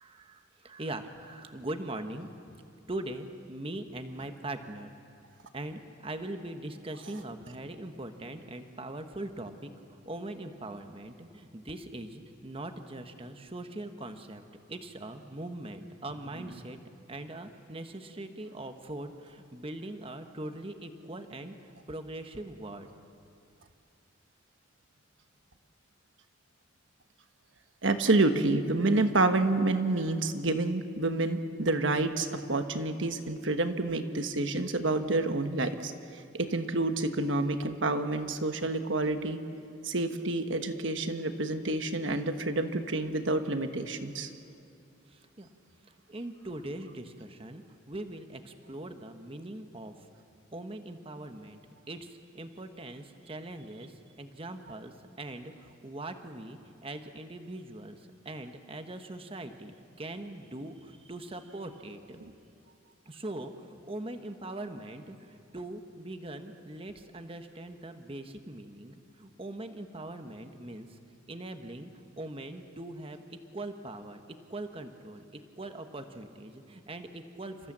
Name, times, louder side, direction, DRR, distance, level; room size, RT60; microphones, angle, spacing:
voice 1, 0.0-2.3 2.9-4.9 5.5-14.4 14.7-16.8 17.1-22.9 45.1-45.5 46.1-50.1 50.5-51.6 51.9-62.2 63.1-71.0 71.3-71.9 72.2-74.2 74.5-77.7, right 1 dB, 30° right, 7 dB, 1.1 m, -41 dB
voice 2, 27.8-35.9 36.3-39.4 39.8-44.3 62.2-62.3, right 2 dB, 80° right, 8 dB, 1.3 m, -28 dB
29.0 x 14.5 x 7.3 m, 2.5 s
head